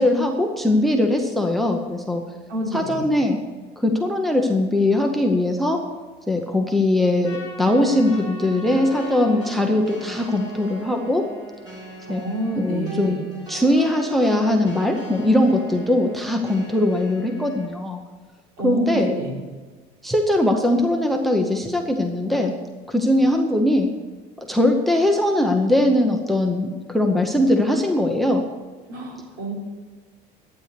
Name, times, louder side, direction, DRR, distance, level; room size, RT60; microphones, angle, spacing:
voice 1, 0.0-2.2 2.7-3.4 3.8-5.8 6.3-11.3 12.1-12.2 12.6-13.2 13.5-18.0 18.6-19.1 20.0-22.5 22.9-23.9 24.4-28.4, left 1 dB, ahead, 4 dB, 0.7 m, -20 dB
voice 2, 2.5-3.1 12.1-13.2 18.6-19.4 28.9-29.5, right 1 dB, 65° right, -1 dB, 3.9 m, -28 dB
Trumpet, 7.2-11.6, left 3 dB, 15° left, 2.3 m, -42 dB
sound 1, 8.1-17.7, right 1 dB, 20° right, 3.2 m, -39 dB
12.0 x 9.3 x 6.7 m, 1.4 s
cardioid pair, 180°, 18 cm